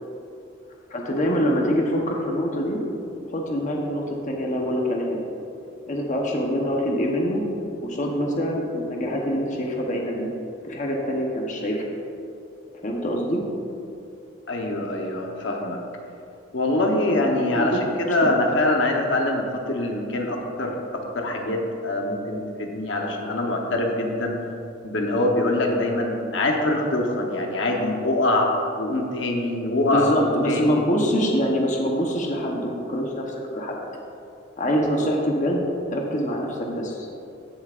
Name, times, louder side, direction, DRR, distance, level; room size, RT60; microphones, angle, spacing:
voice 1, 0.9-2.8 3.3-5.2 5.9-7.5 7.8-10.3 10.6-11.8 12.8-13.4 17.5-17.8 18.1-18.2 29.9-33.8 34.6-37.1, equal, 40° left, -1 dB, 0.9 m, -25 dB
voice 2, 14.5-15.8 16.5-24.4 24.8-28.5 28.8-30.2 30.4-30.8, left 2 dB, 70° left, 1 dB, 1.0 m, -24 dB
15.0 x 7.2 x 2.5 m, 2.7 s
head